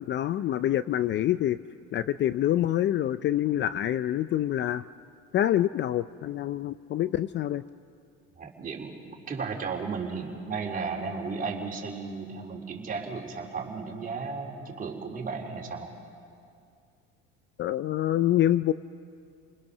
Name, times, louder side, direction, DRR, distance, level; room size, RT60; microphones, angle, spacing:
voice 1, 0.0-1.6 1.9-4.9 5.3-7.6 17.6-18.7, left 12 dB, 40° left, 14 dB, 0.5 m, -26 dB
voice 2, 8.4-15.9, right 4 dB, 30° right, -1 dB, 3.9 m, -34 dB
29.5 x 21.0 x 6.6 m, 2.4 s
supercardioid pair, 105°, 29 cm